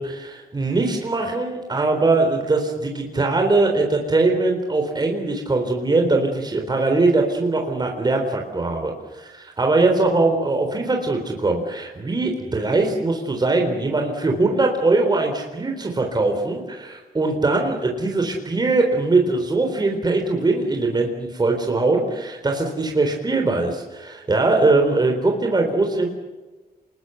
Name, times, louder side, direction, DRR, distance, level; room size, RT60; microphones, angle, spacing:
voice 1, 0.0-26.1, right 3 dB, 25° right, 2 dB, 4.0 m, -21 dB
28.5 x 21.0 x 8.1 m, 1.2 s
wide cardioid pair, 130°, 16 cm